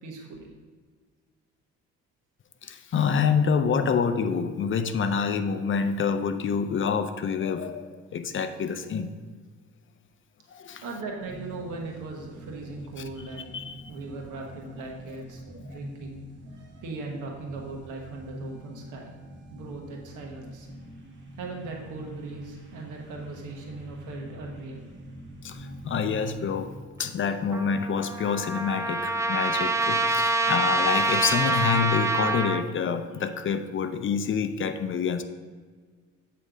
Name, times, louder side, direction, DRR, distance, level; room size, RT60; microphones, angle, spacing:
voice 1, 0.0-0.5 10.8-13.5 13.9-19.1 19.5-20.7 21.4-24.8, right 3 dB, 90° right, 0 dB, 1.2 m, -38 dB
voice 2, 2.6-9.1 10.5-10.8 13.5-13.8 25.4-26.7 27.0-35.2, left 6 dB, 40° left, 9 dB, 0.5 m, -27 dB
sound 1, 11.2-26.8, equal, 35° right, 1.3 m, -45 dB
Trumpet, 27.5-32.6, right 2 dB, 10° right, 0.4 m, -26 dB
7.8 x 3.3 x 5.0 m, 1.5 s
cardioid pair, 90°, 30 cm